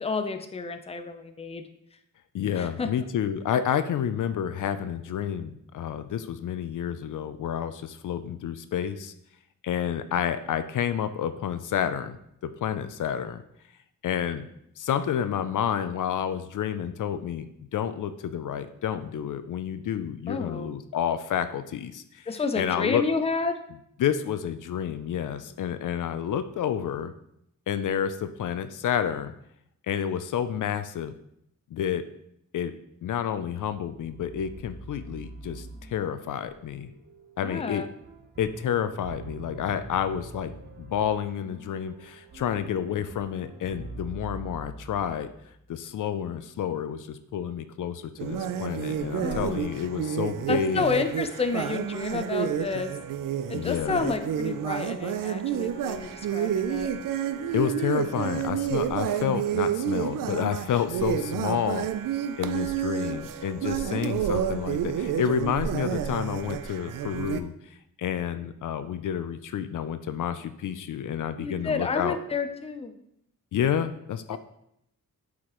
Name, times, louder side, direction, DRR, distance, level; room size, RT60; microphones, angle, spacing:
voice 1, 0.0-1.6 2.5-2.9 20.3-20.7 22.3-23.5 37.4-37.9 49.2-49.6 50.5-52.9 53.5-56.9 71.4-72.9 74.3-74.4, left 4 dB, 20° left, 8 dB, 0.5 m, -30 dB
voice 2, 2.3-9.1 9.6-13.4 14.0-14.5 14.8-22.3 22.6-23.0 24.0-27.1 27.7-29.3 29.9-31.1 31.7-32.1 32.5-32.7 33.0-36.9 37.4-37.8 38.4-40.5 40.8-45.3 45.7-50.8 53.5-54.1 57.5-61.9 62.4-72.2 73.5-74.4, left 9 dB, 70° left, 11 dB, 0.5 m, -29 dB
sound 1, 33.7-45.7, right 2 dB, 30° right, 1.1 m, -44 dB
sound 2, 48.2-67.4, right 9 dB, 75° right, 0.5 m, -30 dB
8.2 x 4.8 x 3.0 m, 0.76 s
wide cardioid pair, 105°, 33 cm